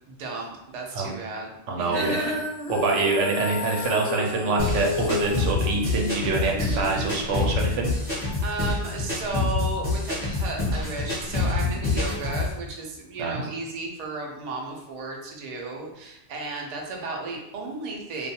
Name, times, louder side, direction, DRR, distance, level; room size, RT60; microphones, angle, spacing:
voice 1, 0.1-2.4 8.4-18.3, right 3 dB, 55° right, 0 dB, 0.4 m, -34 dB
voice 2, 1.7-2.3 2.7-7.9 13.2-13.4, right 3 dB, 85° right, 1 dB, 0.9 m, -25 dB
Female singing, 1.9-8.1, left 4 dB, 75° left, 0.9 m, -32 dB
sound 1, 4.6-12.5, left 3 dB, 35° left, 0.8 m, -27 dB
2.4 x 2.2 x 2.7 m, 0.84 s
omnidirectional pair, 1.2 m